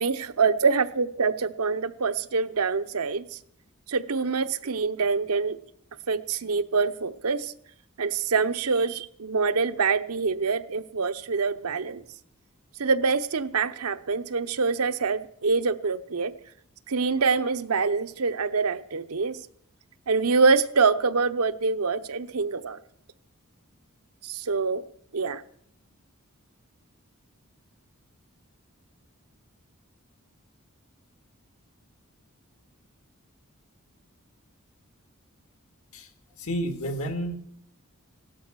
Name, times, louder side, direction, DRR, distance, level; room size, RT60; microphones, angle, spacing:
voice 1, 0.0-3.4 3.9-5.6 6.1-7.5 8.0-12.0 12.8-16.3 16.9-19.4 20.1-22.8 24.2-24.8 25.1-25.4, right 4 dB, 90° right, 10 dB, 0.9 m, -25 dB
voice 2, 36.4-37.3, equal, 80° left, 7 dB, 2.1 m, -30 dB
17.0 x 12.5 x 6.3 m, 0.69 s
head